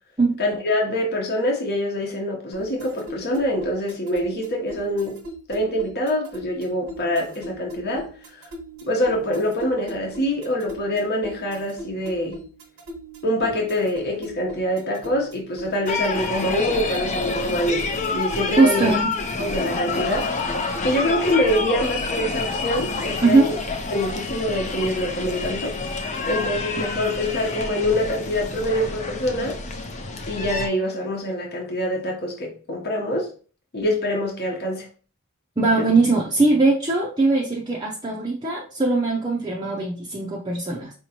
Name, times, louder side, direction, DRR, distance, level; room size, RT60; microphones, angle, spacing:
voice 1, 0.4-5.2 5.5-8.5 8.8-12.4 13.2-18.9 19.4-20.4 20.8-23.6 23.9-25.8 26.3-29.6 30.3-33.3 33.7-34.9 35.8-35.9, left 1 dB, 50° left, 0.9 m, -25 dB
sound 1, 2.5-22.1, right 1 dB, 85° right, 1.0 m, -40 dB
sound 2, 15.9-30.7, left 3 dB, 35° left, 0.6 m, -28 dB
voice 2, 18.6-19.1 23.2-23.5 35.6-40.9, right 3 dB, 20° right, 0.5 m, -20 dB
4.9 x 3.0 x 2.8 m
head